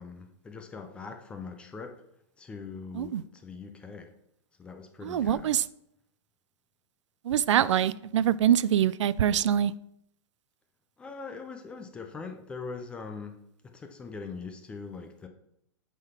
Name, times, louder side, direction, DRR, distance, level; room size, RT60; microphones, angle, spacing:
voice 1, 0.0-2.0 2.4-4.1 4.6-5.5 11.0-15.3, left 4 dB, 5° left, 0.4 m, -42 dB
voice 2, 5.0-5.6 7.2-9.7, right 10 dB, 80° right, 0.4 m, -24 dB
8.1 x 3.8 x 5.7 m
hypercardioid pair, 165°, 15 cm